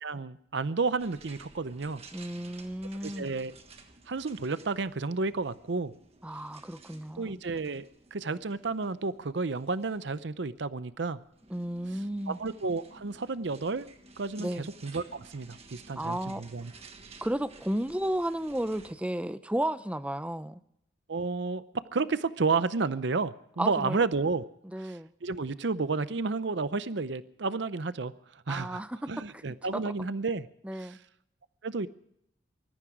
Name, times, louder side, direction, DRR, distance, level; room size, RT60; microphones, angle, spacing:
voice 1, 0.0-2.0 3.0-3.5 4.1-5.9 7.2-7.8 8.1-11.2 12.3-13.9 14.2-16.7 21.1-24.5 24.8-28.8 29.1-30.5 30.7-31.0 31.6-31.9, right 4 dB, 60° right, 0.6 m, -31 dB
sound 1, 1.0-18.9, right 3 dB, 30° right, 1.5 m, -54 dB
voice 2, 2.1-3.3 6.2-7.4 11.5-12.4 14.4-14.7 16.0-16.4 17.2-20.6 23.6-24.0 24.7-25.1 28.5-29.4 29.7-29.8 30.6-31.0, right 1 dB, 5° right, 0.6 m, -33 dB
21.0 x 14.0 x 4.9 m
head